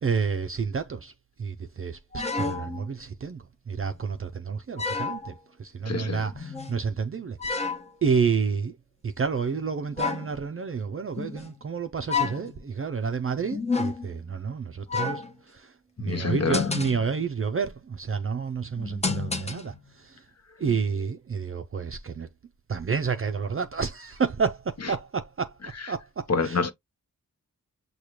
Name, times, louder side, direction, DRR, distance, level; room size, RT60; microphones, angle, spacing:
voice 1, 0.0-1.1 1.4-7.7 8.0-8.8 9.0-20.2 20.6-22.3 22.7-25.6 25.9-26.6, right 5 dB, 40° right, 0.5 m, -30 dB
sound 1, 2.1-2.9 4.0-4.1 4.8-5.3 6.3-6.8 7.4-7.9 10.0-10.4 11.2-11.5 12.1-12.6 13.5-14.2 14.9-15.3 16.2-17.2 18.8-19.8 20.7-20.8, left 4 dB, 20° left, 0.8 m, -30 dB
voice 2, 5.9-6.3 16.0-16.7 24.8-24.9 26.3-26.7, left 4 dB, 50° left, 0.8 m, -27 dB
6.4 x 2.3 x 2.9 m
wide cardioid pair, 100°, 33 cm